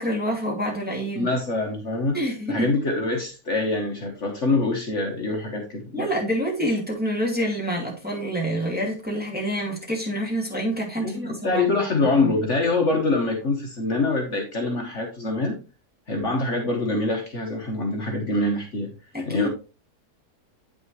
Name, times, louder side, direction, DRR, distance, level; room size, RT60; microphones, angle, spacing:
voice 1, 0.0-1.3 2.1-2.8 5.9-12.4 19.1-19.5, equal, 5° right, 2.3 m, -27 dB
voice 2, 1.1-2.2 2.5-6.1 11.0-15.6 16.1-18.9 19.3-19.5, left 2 dB, 50° left, 1.5 m, -25 dB
8.7 x 6.2 x 3.1 m
omnidirectional pair, 1.7 m